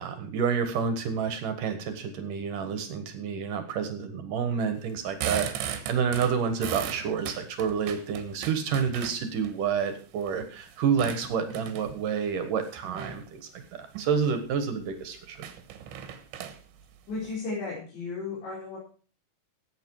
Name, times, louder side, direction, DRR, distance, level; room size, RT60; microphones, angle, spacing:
voice 1, 0.0-15.4, right 6 dB, 60° right, 8 dB, 2.5 m, -29 dB
sound 1, 4.9-9.5 10.0-12.1 12.8-13.3 13.8-14.1 14.5-14.6 14.9-15.0 15.4-17.4, right 9 dB, 90° right, 3.7 m, -37 dB
voice 2, 17.1-18.8, left 3 dB, 75° left, -7 dB, 7.2 m, -34 dB
16.5 x 8.2 x 4.8 m, 0.39 s
omnidirectional pair, 5.1 m